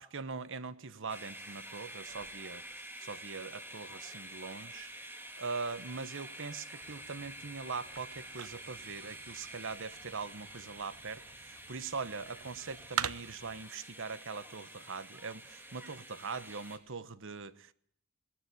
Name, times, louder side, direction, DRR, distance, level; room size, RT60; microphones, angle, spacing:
voice 1, 0.0-4.9 5.4-17.7, right 4 dB, 65° right, 1.1 m, -42 dB
sound 1, 1.1-16.8, right 1 dB, 10° right, 2.3 m, -48 dB
sound 2, 6.8-13.6, right 8 dB, 90° right, 0.8 m, -44 dB
20.0 x 18.5 x 8.0 m
head